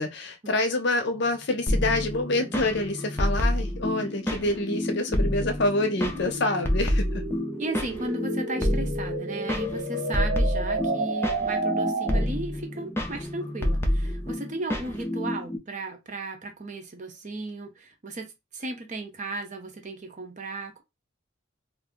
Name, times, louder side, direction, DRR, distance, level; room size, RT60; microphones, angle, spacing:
voice 1, 0.0-7.2, left 2 dB, 60° left, 0.6 m, -27 dB
sound 1, 1.2-12.5, right 2 dB, 70° right, 0.9 m, -33 dB
sound 2, 1.7-15.6, left 1 dB, 10° left, 0.4 m, -28 dB
voice 2, 7.6-20.8, right 2 dB, 40° right, 0.6 m, -35 dB
2.5 x 2.0 x 3.6 m
head